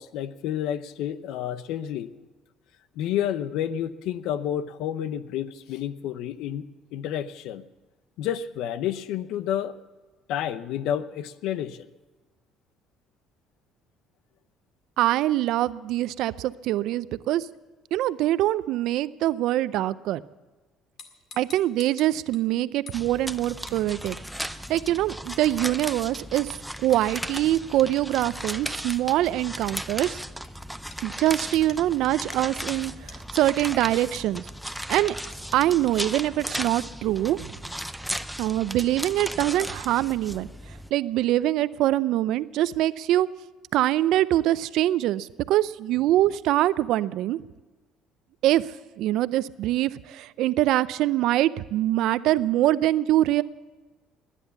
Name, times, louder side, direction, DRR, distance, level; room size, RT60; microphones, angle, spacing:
voice 1, 0.0-2.1 3.0-6.7 6.9-7.6 8.2-9.8 10.3-11.9, left 10 dB, 75° left, 14 dB, 0.7 m, -30 dB
voice 2, 15.0-17.5 17.9-20.2 21.4-24.2 24.7-30.2 31.0-34.5 34.9-35.2 35.5-37.6 38.4-40.5 40.9-43.3 43.7-47.4 48.4-48.7 49.0-53.4, right 14 dB, 70° right, 17 dB, 0.5 m, -24 dB
sound 1, 21.0-22.4 22.9-23.0 23.7-23.8 24.0-24.2 24.7-24.8 25.3-25.5 25.9-26.0 26.9-27.1 28.9-29.1 29.9-30.0 30.4-30.5 30.9-31.0 31.7-31.8 32.3-32.4 32.7-32.8 33.1-33.2 33.6-33.7 34.1-34.2 34.7-34.8 35.2-35.3, left 5 dB, 50° left, 2.1 m, -45 dB
sound 2, 22.9-40.9, equal, ahead, 0.6 m, -36 dB
20.0 x 10.0 x 7.1 m, 1.2 s
supercardioid pair, 90°, 0 cm